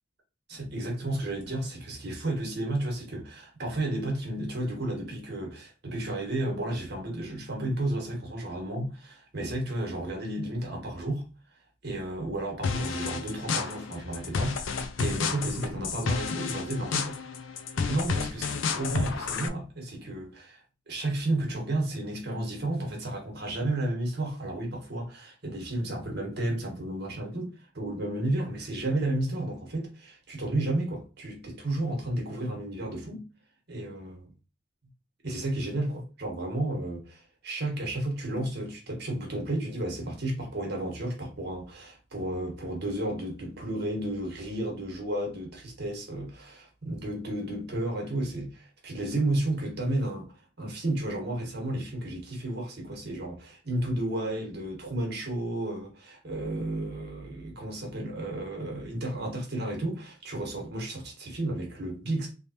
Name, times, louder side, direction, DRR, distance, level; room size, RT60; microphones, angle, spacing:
voice 1, 0.5-11.3 11.8-17.3 17.7-20.6 20.9-33.3 33.7-34.3 35.2-48.5 48.8-50.3 50.6-62.3, right 1 dB, 55° right, 1.2 m, -32 dB
sound 1, 12.6-19.5, left 5 dB, 80° left, 0.4 m, -31 dB
3.3 x 2.8 x 2.8 m
head